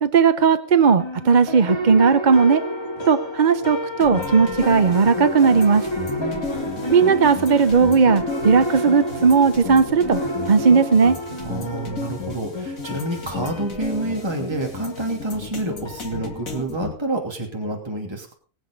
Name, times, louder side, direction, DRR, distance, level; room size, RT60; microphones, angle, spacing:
voice 1, 0.0-2.6 3.1-5.9 6.9-10.2 10.5-11.2, right 5 dB, 40° right, 10 dB, 0.8 m, -16 dB
sound 1, 1.0-16.6, equal, 20° left, 2.2 m, -30 dB
sound 2, 4.0-16.9, left 4 dB, 75° left, 3.0 m, -33 dB
voice 2, 6.1-6.5 11.4-18.3, right 2 dB, 20° right, 1 dB, 2.9 m, -28 dB
21.0 x 8.0 x 5.3 m, 0.39 s
omnidirectional pair, 1.4 m